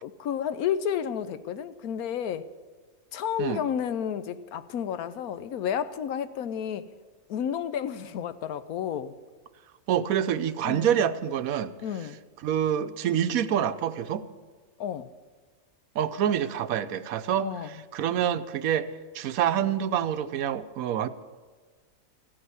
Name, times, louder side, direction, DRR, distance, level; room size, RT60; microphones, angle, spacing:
voice 1, 0.0-2.5 3.1-6.9 7.3-9.1 10.6-10.9 11.8-12.2 14.8-15.1 17.4-17.7, left 8 dB, 85° left, 13 dB, 1.2 m, -31 dB
voice 2, 9.9-11.7 12.4-14.3 15.9-21.1, right 9 dB, 75° right, 12 dB, 1.1 m, -27 dB
14.5 x 8.8 x 9.6 m, 1.5 s
omnidirectional pair, 1.5 m